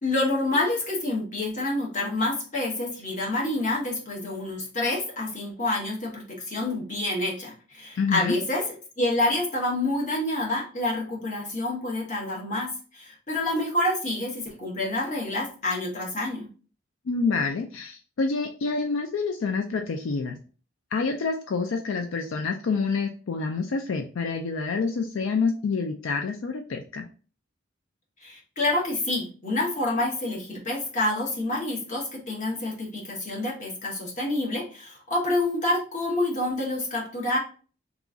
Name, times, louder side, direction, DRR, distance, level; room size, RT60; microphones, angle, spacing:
voice 1, 0.0-8.6 9.0-16.5 28.2-37.4, left 2 dB, 40° left, -2 dB, 1.1 m, -28 dB
voice 2, 8.0-8.3 17.1-20.4 20.9-27.0, left 4 dB, 75° left, 5 dB, 0.4 m, -27 dB
3.0 x 2.4 x 3.7 m, 0.38 s
head